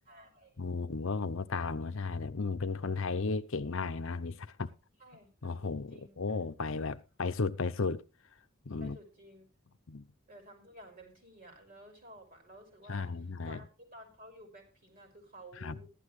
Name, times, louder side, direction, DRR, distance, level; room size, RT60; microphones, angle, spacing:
voice 1, 0.1-0.7 5.0-5.6 5.9-6.4 8.8-9.8 10.3-15.9, right 1 dB, 40° right, 5.4 m, -54 dB
voice 2, 0.6-4.7 5.4-8.0 8.7-9.0 9.9-10.0 12.9-13.6 15.6-15.8, left 4 dB, 65° left, 0.7 m, -34 dB
15.0 x 12.0 x 3.2 m
head